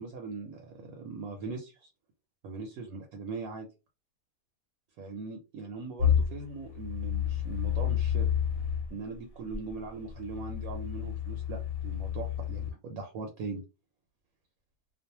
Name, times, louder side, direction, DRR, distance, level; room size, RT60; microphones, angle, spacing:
voice 1, 0.0-1.9 2.4-3.7 5.0-8.3 8.9-13.6, right 4 dB, 70° right, 3 dB, 1.0 m, -40 dB
sound 1, 6.0-8.9 9.5-12.7, left 9 dB, 65° left, 1.0 m, -30 dB
2.5 x 2.1 x 2.8 m, 0.28 s
omnidirectional pair, 1.7 m